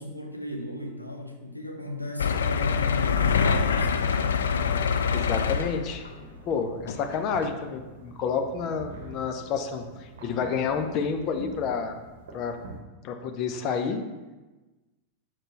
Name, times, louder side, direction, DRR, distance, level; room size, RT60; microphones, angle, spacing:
voice 1, 0.0-4.4, left 1 dB, 85° left, 2 dB, 0.8 m, -36 dB
sound 1, 2.2-6.1 6.9-7.0 7.4-7.5, left 6 dB, 65° left, 0.4 m, -25 dB
sound 2, 3.8-12.8, right 2 dB, 60° right, 0.9 m, -46 dB
voice 2, 5.1-6.0 6.5-12.0 12.3-12.6 13.0-14.0, left 6 dB, 40° left, 5 dB, 0.7 m, -29 dB
6.6 x 5.9 x 3.1 m, 1.2 s
figure-of-eight pair, 90°, 0 cm